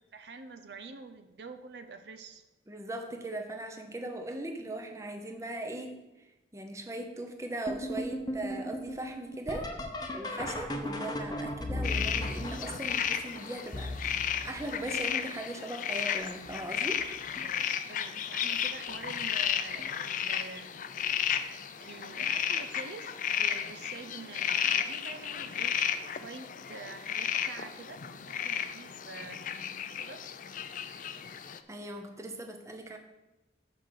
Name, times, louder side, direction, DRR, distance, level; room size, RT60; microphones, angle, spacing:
voice 1, 0.1-2.4 17.9-20.7 21.8-25.8 26.1-29.4 30.0-30.2, right 4 dB, 70° right, 8 dB, 0.6 m, -46 dB
voice 2, 2.7-6.0 6.5-9.7 10.1-14.2 14.5-17.0 31.7-33.0, right 1 dB, 15° right, 4 dB, 0.7 m, -39 dB
sound 1, 7.7-15.3 16.0-16.5 17.0-17.6 18.9-19.0 19.7-20.0 22.2-22.3 24.6-24.7, left 1 dB, 25° left, 0.8 m, -37 dB
sound 2, 11.8-31.6, left 9 dB, 45° left, 0.4 m, -33 dB
6.2 x 5.7 x 6.4 m, 1.0 s
head